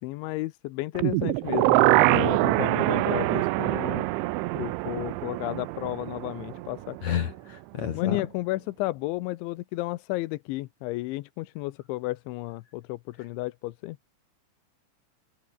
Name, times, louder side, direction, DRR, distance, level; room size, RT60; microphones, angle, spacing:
voice 1, 0.0-4.1 4.6-7.3 7.9-14.0, left 19 dB, 85° left, 3.2 m, -33 dB
sound 1, 1.0-7.0 7.3-7.4, right 20 dB, 85° right, 3.1 m, -24 dB
voice 2, 2.1-2.6 7.0-8.2, left 8 dB, 55° left, 2.2 m, -31 dB
omnidirectional pair, 5.3 m